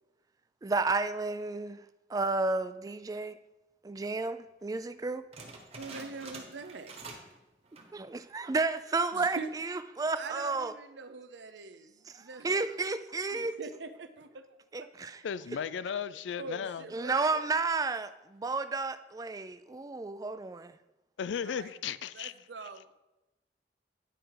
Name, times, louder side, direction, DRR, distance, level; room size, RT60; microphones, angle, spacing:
voice 1, 0.6-1.8 2.1-3.3 3.8-5.2 7.9-10.7 12.1-13.5 14.7-15.1 16.9-20.7, right 3 dB, 20° right, 0.3 m, -32 dB
sound 1, 5.3-7.4 7.6-8.0 8.5-8.6 9.3-9.7, right 3 dB, 35° right, 1.2 m, -47 dB
voice 2, 5.8-6.9 9.1-9.5 10.2-12.6 13.3-14.4 14.7-14.9 16.3-17.4 21.4-21.7 22.1-22.9, right 4 dB, 80° right, 0.6 m, -43 dB
voice 3, 15.2-16.9 21.2-22.3, left 7 dB, 90° left, 0.4 m, -35 dB
9.9 x 4.9 x 4.7 m
head